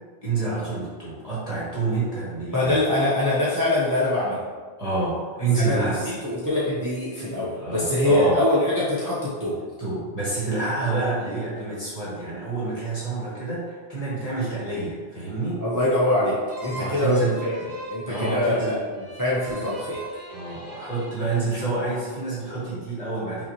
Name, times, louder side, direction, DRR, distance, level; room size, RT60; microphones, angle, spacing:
voice 1, 0.2-2.8 4.8-6.1 7.6-8.4 9.8-15.6 16.7-17.4 18.1-18.7 20.3-23.5, right 3 dB, 35° left, -8 dB, 1.5 m, -28 dB
voice 2, 2.5-4.4 5.6-9.6 15.6-20.0, left 1 dB, 20° right, -9 dB, 0.7 m, -24 dB
sound 1, 16.5-22.0, right 1 dB, 40° right, 1.0 m, -40 dB
5.7 x 2.8 x 2.9 m, 1.5 s
omnidirectional pair, 1.2 m